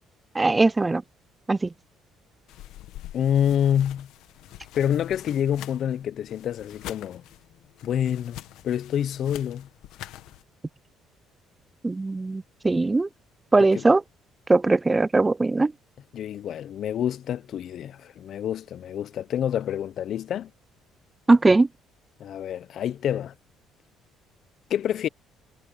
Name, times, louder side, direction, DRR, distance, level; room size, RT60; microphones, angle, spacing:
voice 1, 0.3-1.0 1.5-1.7 11.8-13.1 13.5-14.0 14.5-15.7 21.3-21.7, right 3 dB, 15° right, 0.4 m, -20 dB
sound 1, 2.5-10.4, left 14 dB, 80° left, 1.4 m, -45 dB
voice 2, 3.1-4.1 4.7-7.2 7.8-8.4 8.6-9.7 13.6-13.8 16.1-20.5 22.2-23.3 24.7-25.1, left 9 dB, 60° left, 0.6 m, -27 dB
cardioid pair, 110°, 0 cm